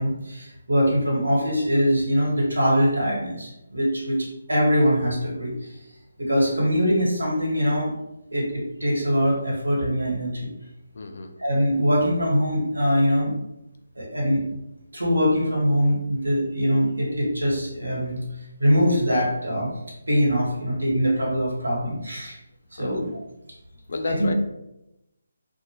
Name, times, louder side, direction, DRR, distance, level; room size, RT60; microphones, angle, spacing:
voice 1, 0.0-5.8 6.2-7.9 8.3-10.5 11.4-13.3 14.0-14.4 14.9-18.2 18.6-19.7 20.1-22.4 22.7-23.2 24.0-24.3, equal, 75° right, -4 dB, 1.1 m, -23 dB
voice 2, 10.9-11.3 22.8-23.0 23.9-24.3, left 3 dB, 50° left, 6 dB, 0.3 m, -31 dB
2.6 x 2.2 x 2.9 m, 0.89 s
figure-of-eight pair, 145°, 0 cm